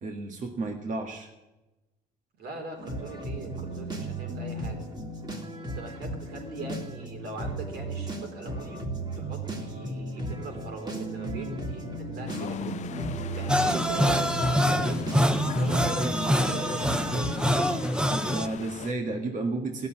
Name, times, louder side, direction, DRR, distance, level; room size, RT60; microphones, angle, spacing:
voice 1, 0.0-1.3 18.1-19.9, right 3 dB, 50° right, 3 dB, 1.8 m, -32 dB
voice 2, 2.4-4.8 5.6-12.8 13.3-17.4, right 3 dB, 70° right, 3 dB, 3.9 m, -41 dB
sound 1, 2.8-17.8, right 1 dB, 25° right, 2.3 m, -35 dB
sound 2, 12.3-18.9, left 10 dB, 45° left, 0.4 m, -40 dB
sound 3, 13.5-18.5, equal, 5° right, 0.7 m, -25 dB
16.0 x 6.9 x 9.6 m, 1.1 s
cardioid pair, 110°, 17 cm